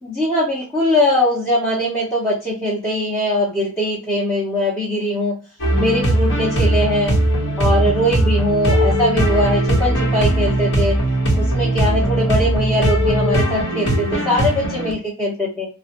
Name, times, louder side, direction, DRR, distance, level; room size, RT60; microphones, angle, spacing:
voice 1, 0.0-5.3 5.8-7.1 7.6-10.9 11.4-15.7, left 1 dB, 10° left, -8 dB, 0.8 m, -21 dB
sound 1, 5.6-14.9, right 1 dB, 60° left, 1.0 m, -19 dB
3.4 x 2.1 x 2.8 m, 0.36 s
head